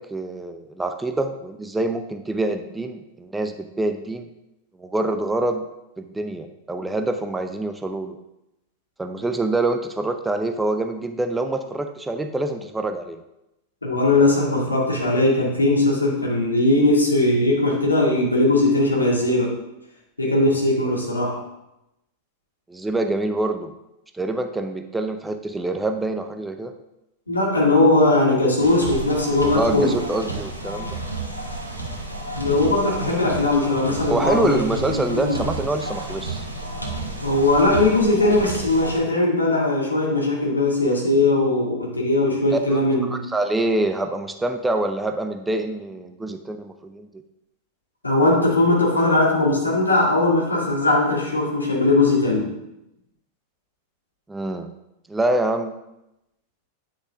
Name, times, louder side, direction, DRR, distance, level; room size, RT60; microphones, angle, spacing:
voice 1, 0.0-4.3 4.8-5.7 6.0-8.2 9.0-13.2 22.7-23.8 24.1-26.7 29.5-31.0 34.1-36.4 42.5-42.8 43.1-47.1 54.3-54.7 55.1-55.8, right 2 dB, 10° right, 6 dB, 0.6 m, -26 dB
voice 2, 13.8-19.6 20.2-21.4 27.3-30.0 32.4-35.3 37.2-43.2 48.0-52.5, left 2 dB, 80° left, -2 dB, 2.2 m, -19 dB
sound 1, 28.6-39.0, right 2 dB, 90° right, 1.4 m, -31 dB
9.9 x 6.1 x 3.6 m, 0.89 s
figure-of-eight pair, 90°, 0 cm